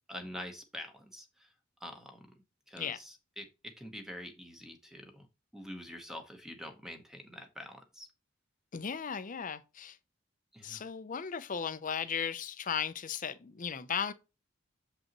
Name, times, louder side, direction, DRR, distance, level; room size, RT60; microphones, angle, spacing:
voice 1, 0.1-1.5 1.8-2.3 2.7-5.3 5.5-8.1 10.5-10.8, equal, ahead, 1.0 m, -46 dB
voice 2, 8.7-10.0 10.6-14.1, left 7 dB, 40° left, 0.6 m, -36 dB
7.1 x 5.3 x 3.0 m
head